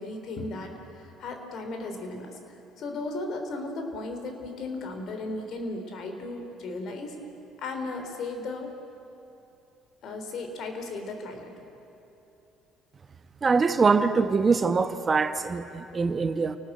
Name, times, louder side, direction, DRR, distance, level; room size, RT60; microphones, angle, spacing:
voice 1, 0.0-7.2 7.6-8.7 10.0-11.5, left 2 dB, 55° left, 5 dB, 3.6 m, -36 dB
voice 2, 13.4-16.6, right 4 dB, 35° right, 10 dB, 1.1 m, -23 dB
28.5 x 19.5 x 7.9 m, 2.9 s
hypercardioid pair, 55°, 0 cm